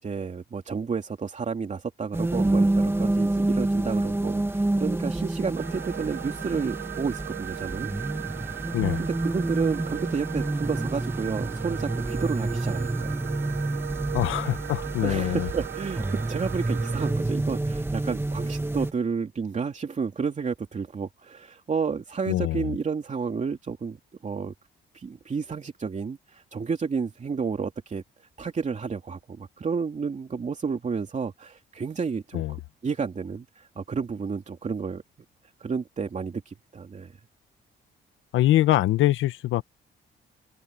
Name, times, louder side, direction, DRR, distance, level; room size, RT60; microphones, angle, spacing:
voice 1, 0.0-7.9 8.2-8.7 9.0-13.2 13.8-13.9 14.5-14.6 15.0-24.5 24.9-28.0 28.4-35.0 35.6-37.2, right 5 dB, 35° right, 2.8 m, -31 dB
sound 1, 2.1-18.9, right 2 dB, 10° right, 1.6 m, -28 dB
sound 2, 5.5-17.1, right 13 dB, 65° right, 1.1 m, -38 dB
voice 2, 14.1-15.5 22.3-22.7 32.3-32.6 38.3-39.6, left 14 dB, 85° left, 1.1 m, -24 dB
cardioid pair, 90°, 20 cm